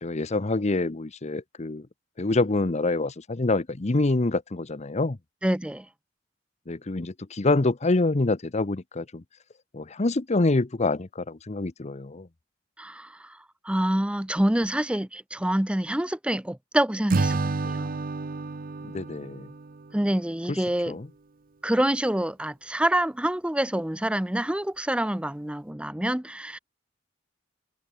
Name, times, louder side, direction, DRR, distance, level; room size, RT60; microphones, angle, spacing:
voice 1, 0.0-1.9 2.2-5.2 6.7-9.2 9.7-12.3 18.9-19.5 20.9-21.1, left 2 dB, 35° left, 0.8 m, -26 dB
voice 2, 5.4-5.8 12.8-13.1 13.6-18.0 19.9-21.0 21.6-26.6, right 1 dB, 5° right, 0.6 m, -26 dB
Acoustic guitar / Strum, 17.1-20.4, right 3 dB, 50° right, 0.7 m, -30 dB
head